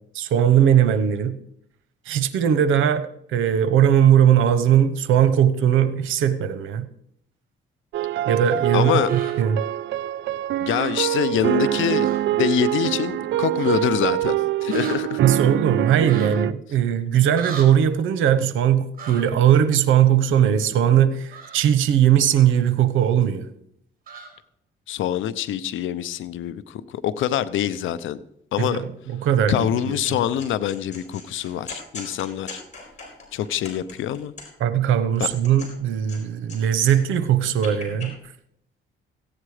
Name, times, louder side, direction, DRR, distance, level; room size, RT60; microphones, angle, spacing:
voice 1, 0.1-1.4 2.1-3.0 3.3-6.9 8.3-9.6 15.2-23.4 28.6-30.2 34.6-38.2, right 9 dB, 85° right, 14 dB, 1.0 m, -19 dB
sound 1, 7.9-16.5, right 14 dB, 65° right, 0.4 m, -24 dB
voice 2, 8.7-9.1 10.6-15.2 24.9-28.2 28.5-28.8 29.5-32.6 33.3-34.3 35.2-35.3, left 10 dB, 80° left, 15 dB, 0.7 m, -25 dB
sound 2, 9.0-9.3 10.7-10.9 12.0-12.2 12.5-12.6 13.6-13.8 14.7-15.0 16.0-16.3 17.4-17.7 18.9-19.2 21.3-21.6 24.1-24.3, right 5 dB, 45° right, 3.5 m, -36 dB
sound 3, 29.5-30.1 30.4-34.7 35.1-36.6 36.8-38.1, left 3 dB, 35° left, 4.5 m, -40 dB
15.0 x 8.8 x 4.9 m, 0.74 s
cardioid pair, 90°, 20 cm